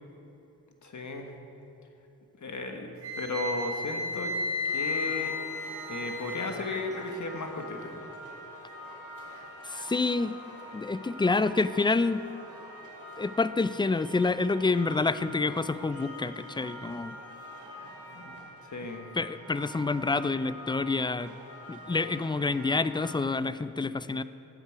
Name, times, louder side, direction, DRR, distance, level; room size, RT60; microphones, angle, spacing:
voice 1, 0.8-1.3 2.4-4.3 4.7-5.3 5.9-8.0 18.1-18.3 18.6-19.1, left 2 dB, 45° left, 4 dB, 1.4 m, -35 dB
Wind instrument woodwind instrument, 3.0-6.5, left 3 dB, 80° right, 1.9 m, -33 dB
sound 1, 4.7-23.2, equal, 50° right, 2.4 m, -45 dB
voice 2, 9.7-10.4 10.7-12.2 13.2-17.2 19.1-21.3 21.7-24.2, left 3 dB, 15° left, 14 dB, 0.3 m, -28 dB
12.0 x 8.2 x 4.6 m, 2.9 s
supercardioid pair, 40°, 39 cm